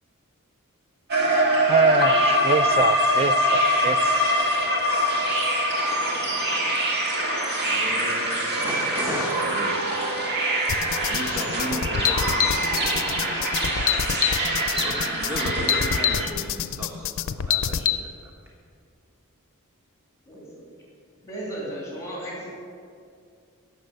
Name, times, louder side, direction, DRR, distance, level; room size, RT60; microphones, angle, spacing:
sound 1, 1.1-16.3, equal, 50° right, 1.9 m, -24 dB
voice 1, 1.7-4.1, right 5 dB, 25° right, 14 dB, 0.3 m, -24 dB
voice 2, 7.2-10.0 10.4-10.6 11.1-13.4 14.6-18.3, equal, 10° right, -3 dB, 1.3 m, -35 dB
sound 2, 10.7-18.0, left 8 dB, 65° left, 0.5 m, -26 dB
voice 3, 20.3-20.6 21.2-22.5, right 1 dB, 15° left, -5 dB, 3.0 m, -35 dB
17.5 x 6.9 x 6.6 m, 2.3 s
head